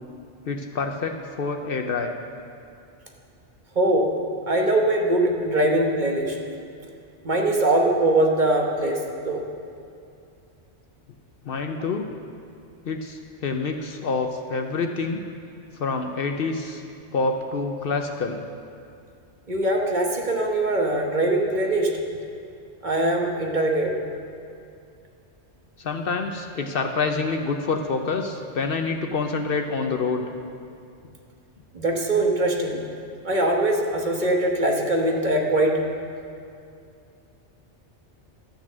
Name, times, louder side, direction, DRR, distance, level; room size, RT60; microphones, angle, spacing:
voice 1, 0.5-2.1 11.4-12.1 12.9-15.2 15.8-16.8 17.1-18.4 25.8-30.2, left 4 dB, 60° left, 5 dB, 0.8 m, -27 dB
voice 2, 3.7-4.1 4.5-6.4 7.2-9.0 9.2-9.4 19.5-21.9 22.8-23.9 31.7-32.8 33.2-35.8, right 1 dB, 45° right, 1 dB, 1.2 m, -22 dB
13.0 x 6.1 x 7.3 m, 2.5 s
omnidirectional pair, 1.2 m